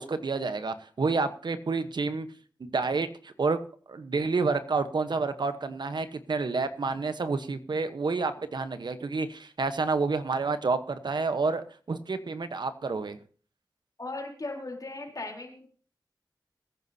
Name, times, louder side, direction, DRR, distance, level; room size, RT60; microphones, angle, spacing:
voice 1, 0.0-2.3 2.6-3.6 3.9-13.2, right 4 dB, 75° right, 10 dB, 1.0 m, -29 dB
voice 2, 14.0-15.7, left 2 dB, 55° left, 1 dB, 3.7 m, -37 dB
21.5 x 9.4 x 2.8 m, 0.43 s
cardioid pair, 50°, 8 cm